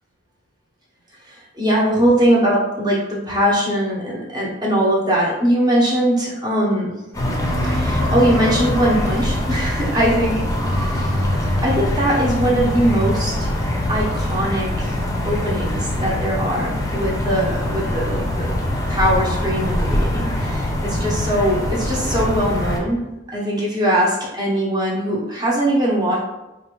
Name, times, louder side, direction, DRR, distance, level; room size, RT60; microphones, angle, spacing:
voice 1, 1.2-7.0 7.6-10.4 10.7-11.3 11.6-13.5 13.9-15.0 15.2-18.6 18.9-23.0 23.3-26.2, right 1 dB, 20° right, -4 dB, 1.0 m, -21 dB
sound 1, 7.1-22.8, left 1 dB, 20° left, 0.6 m, -23 dB
4.3 x 2.5 x 3.1 m, 0.97 s
head